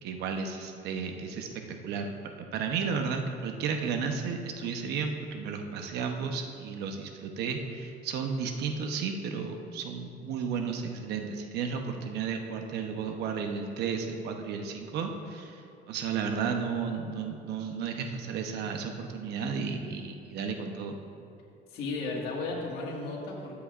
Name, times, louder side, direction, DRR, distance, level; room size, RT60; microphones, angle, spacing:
voice 1, 0.0-15.5 15.9-21.0, right 5 dB, 80° right, 4 dB, 0.9 m, -33 dB
voice 2, 21.7-23.6, left 3 dB, 75° left, -2 dB, 1.9 m, -34 dB
13.0 x 8.3 x 2.5 m, 2.6 s
cardioid pair, 110°, 17 cm